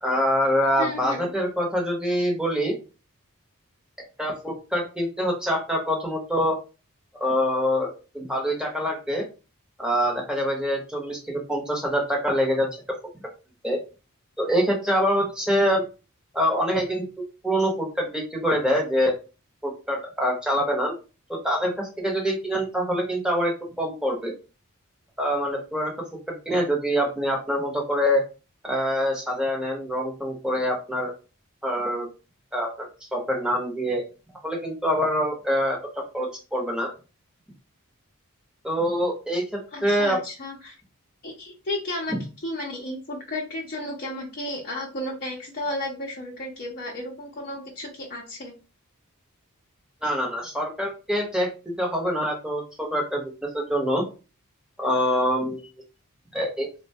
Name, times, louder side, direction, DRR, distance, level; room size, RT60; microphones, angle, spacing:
voice 1, 0.0-2.7 4.2-6.6 7.2-9.2 9.8-12.7 13.6-13.8 14.4-15.8 16.3-19.1 19.6-20.9 21.3-24.3 25.2-25.9 26.5-28.2 28.6-31.1 31.6-32.1 32.5-34.0 34.4-35.8 36.1-36.9 38.6-40.2 50.0-51.5 51.8-54.0 54.8-55.6 56.3-56.7, equal, 5° right, -1 dB, 0.9 m, -25 dB
voice 2, 0.8-1.3 39.7-40.7 41.2-42.1 42.4-48.5, left 1 dB, 45° left, -3 dB, 0.7 m, -33 dB
3.9 x 2.1 x 2.7 m, 0.33 s
head